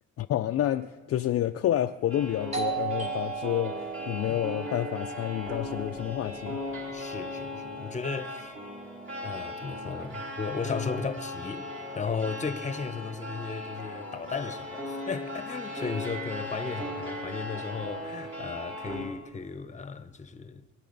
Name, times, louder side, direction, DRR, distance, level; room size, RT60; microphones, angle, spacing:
voice 1, 0.2-6.6, left 12 dB, 50° left, 0.4 m, -29 dB
sound 1, 2.1-19.1, left 1 dB, 45° right, 4.1 m, -38 dB
Doorbell, 2.5-7.9, right 8 dB, 20° right, 2.1 m, -37 dB
voice 2, 6.9-8.5 9.2-11.7 12.0-20.6, left 5 dB, 25° left, 0.9 m, -35 dB
22.5 x 9.4 x 4.0 m
cardioid pair, 90°, 30 cm